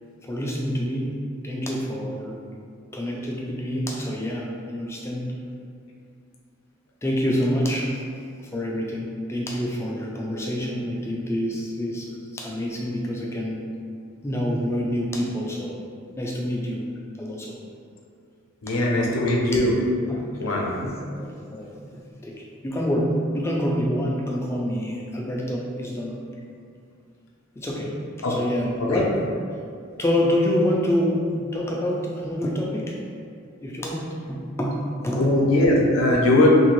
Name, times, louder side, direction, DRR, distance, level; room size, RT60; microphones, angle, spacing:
voice 1, 0.2-1.1 1.4-2.4 2.9-5.3 7.0-8.0 8.4-12.1 12.3-13.6 14.2-15.8 16.2-16.9 17.2-17.5 18.7-19.1 19.4-19.6 20.1-20.5 20.8-21.7 22.2-26.1 27.6-27.9 28.3-29.2 30.0-32.9 33.6-34.8 35.0-35.4, equal, 15° left, -2 dB, 0.3 m, -27 dB
voice 2, 18.6-19.7 20.4-20.7 28.2-28.3 28.8-29.0 35.2-36.5, left 1 dB, 90° left, -2 dB, 0.6 m, -20 dB
2.9 x 2.6 x 3.0 m, 2.3 s
head